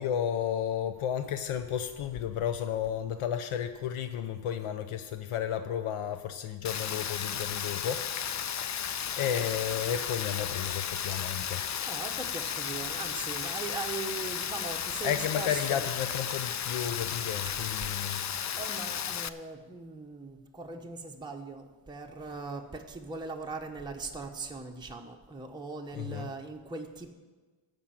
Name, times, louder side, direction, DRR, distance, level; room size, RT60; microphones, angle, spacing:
voice 1, 0.0-8.4 9.2-11.6 15.0-18.2 25.9-26.3, left 9 dB, 85° left, 9 dB, 0.7 m, -32 dB
Rain, 6.6-19.3, left 8 dB, 40° left, 0.4 m, -34 dB
voice 2, 11.8-15.9 17.5-18.1 18.5-27.1, right 3 dB, 10° right, 1 dB, 0.9 m, -40 dB
13.5 x 5.3 x 8.6 m, 1.4 s
wide cardioid pair, 115°, 49 cm